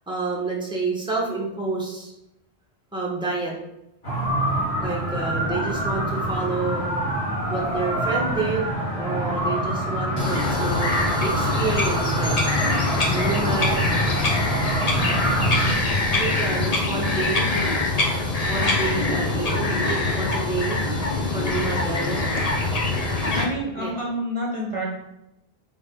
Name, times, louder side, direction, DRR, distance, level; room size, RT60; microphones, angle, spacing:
voice 1, 0.1-2.1 2.9-3.5 4.8-6.9 7.5-12.4 13.1-14.0 15.6-15.7 16.1-17.5 18.5-20.8 21.3-22.2 23.8-23.9, right 3 dB, 5° right, -3 dB, 1.4 m, -29 dB
sound 1, 4.0-15.7, right 1 dB, 85° left, 1.9 m, -26 dB
Bird vocalization bird call bird song, 10.2-23.4, left 2 dB, 40° left, 1.0 m, -24 dB
voice 2, 23.3-24.9, equal, 30° right, -3 dB, 1.2 m, -28 dB
8.6 x 3.5 x 3.8 m, 0.89 s
omnidirectional pair, 1.0 m